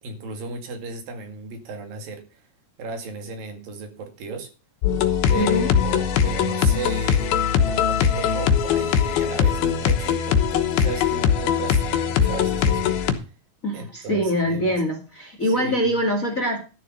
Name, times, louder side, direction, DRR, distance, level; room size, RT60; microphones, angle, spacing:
voice 1, 0.0-2.4 2.8-4.5 5.3-7.3 7.7-13.2 13.7-14.8 15.5-16.0, right 4 dB, 70° right, 6 dB, 3.8 m, -35 dB
sound 1, 4.8-13.1, left 8 dB, 90° left, 3.1 m, -21 dB
voice 2, 5.3-5.7 13.6-16.6, equal, 30° left, 3 dB, 1.8 m, -24 dB
12.5 x 7.2 x 5.3 m, 0.33 s
omnidirectional pair, 4.2 m